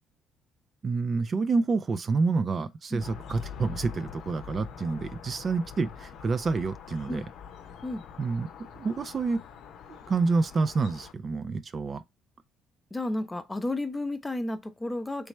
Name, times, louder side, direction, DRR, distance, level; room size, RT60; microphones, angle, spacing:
voice 1, 0.8-7.2 8.2-8.5 8.8-9.4 9.9-12.0, right 4 dB, 45° right, 0.4 m, -28 dB
sound 1, 3.0-11.1, left 7 dB, 70° left, 0.6 m, -44 dB
voice 2, 12.9-15.3, left 2 dB, 20° left, 0.7 m, -32 dB
3.3 x 3.2 x 3.0 m
supercardioid pair, 60°, 0 cm